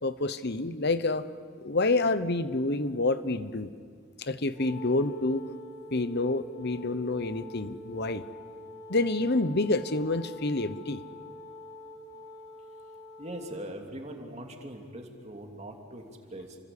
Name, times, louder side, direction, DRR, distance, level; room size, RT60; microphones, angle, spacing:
voice 1, 0.0-1.3 1.6-3.7 4.2-5.4 5.9-8.2 8.9-11.0, left 2 dB, 45° left, 13 dB, 1.0 m, -28 dB
Wind instrument woodwind instrument, 4.5-13.7, left 2 dB, 20° left, 5.6 m, -46 dB
voice 2, 13.2-16.6, right 1 dB, 30° right, 3 dB, 2.8 m, -41 dB
28.5 x 23.5 x 8.6 m, 2.2 s
head